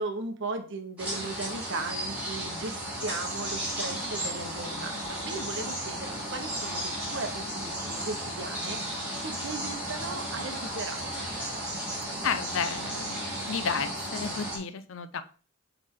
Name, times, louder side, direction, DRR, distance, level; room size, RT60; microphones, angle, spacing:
voice 1, 0.0-8.8 9.2-11.3, right 3 dB, 60° right, 6 dB, 1.0 m, -37 dB
sound 1, 1.0-14.6, right 1 dB, 5° right, 2.7 m, -34 dB
voice 2, 12.2-15.2, left 6 dB, 65° left, 12 dB, 0.5 m, -32 dB
8.4 x 3.4 x 3.7 m, 0.39 s
head